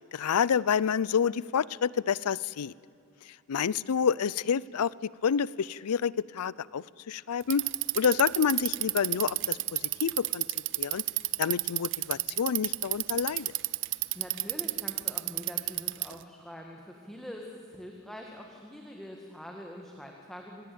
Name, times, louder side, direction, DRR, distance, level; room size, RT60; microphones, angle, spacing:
voice 1, 0.1-2.7 3.5-7.7 7.9-10.5 10.8-11.0 11.4-13.5, left 7 dB, 80° left, 22 dB, 0.5 m, -28 dB
Bicycle, 7.4-16.2, right 19 dB, 55° right, 0.5 m, -30 dB
voice 2, 14.1-20.7, equal, ahead, 0 dB, 1.8 m, -44 dB
27.0 x 18.5 x 8.6 m, 2.6 s
head